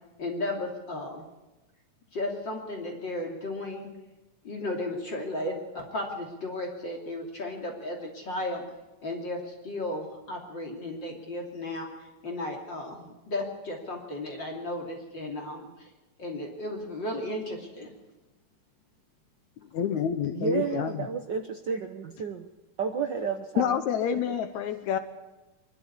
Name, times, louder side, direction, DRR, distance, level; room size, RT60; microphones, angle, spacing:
voice 1, 0.2-1.2 2.1-3.9 4.4-8.6 9.0-11.9 12.2-15.9 16.2-17.9, left 1 dB, 40° left, 0 dB, 3.4 m, -34 dB
voice 2, 19.7-21.0 23.6-25.0, left 8 dB, 75° left, 9 dB, 2.3 m, -28 dB
voice 3, 20.3-22.5 22.8-23.8 24.1-24.2, right 6 dB, 80° right, 5 dB, 0.9 m, -31 dB
24.0 x 13.0 x 9.8 m, 1.1 s
omnidirectional pair, 3.4 m